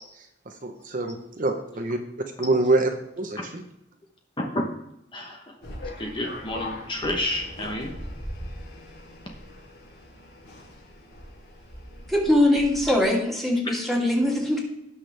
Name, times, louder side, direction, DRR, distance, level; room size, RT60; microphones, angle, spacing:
voice 1, 0.6-2.0 2.4-3.6, right 2 dB, 50° right, 4 dB, 1.0 m, -25 dB
voice 2, 5.1-5.5 6.0-8.0, left 1 dB, 25° left, 1 dB, 1.0 m, -30 dB
sound 1, 5.6-13.0, left 1 dB, 65° left, 4.8 m, -40 dB
voice 3, 12.1-14.6, left 1 dB, ahead, -4 dB, 2.7 m, -22 dB
18.0 x 6.2 x 3.4 m, 0.82 s
head